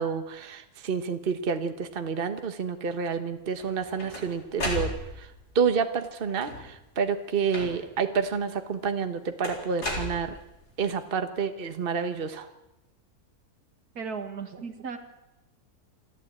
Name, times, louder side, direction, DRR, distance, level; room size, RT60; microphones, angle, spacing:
voice 1, 0.0-5.3 5.5-10.4 10.8-12.5, right 6 dB, 35° right, 8 dB, 1.4 m, -29 dB
sound 1, 3.6-5.4 6.3-6.8 7.5-8.1 9.4-10.7, left 1 dB, 90° left, 4.6 m, -34 dB
voice 2, 13.9-15.0, right 5 dB, 75° right, 7 dB, 2.4 m, -35 dB
27.5 x 13.0 x 8.8 m, 0.95 s
omnidirectional pair, 1.7 m